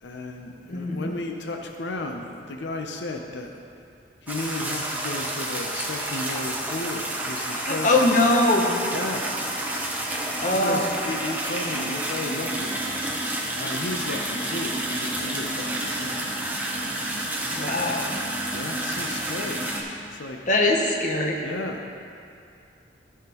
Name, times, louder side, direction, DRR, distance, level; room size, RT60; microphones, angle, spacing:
voice 1, 0.0-3.6 4.2-7.9 8.9-9.3 10.5-12.8 13.6-17.3 18.5-20.4 21.4-21.9, left 2 dB, 90° left, 3 dB, 0.7 m, -34 dB
voice 2, 0.7-1.1 7.5-8.7 10.4-10.9 17.5-18.1 20.5-21.4, left 2 dB, 45° left, 0 dB, 0.9 m, -22 dB
sound 1, 4.3-19.8, right 1 dB, 10° right, 0.7 m, -29 dB
14.5 x 5.8 x 3.0 m, 2.5 s
head